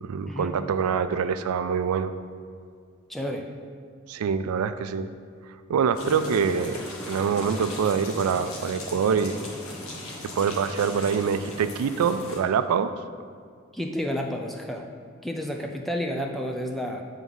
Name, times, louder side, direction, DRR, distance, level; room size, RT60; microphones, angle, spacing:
voice 1, 0.0-2.1 4.1-5.1 5.7-9.4 10.4-12.9, right 6 dB, 85° right, 11 dB, 0.3 m, -25 dB
voice 2, 3.1-3.5 13.7-14.8 15.2-17.0, equal, ahead, 2 dB, 0.4 m, -30 dB
sound 1, 5.9-12.4, left 1 dB, 75° left, 1.3 m, -38 dB
7.4 x 3.6 x 5.4 m, 2.2 s
head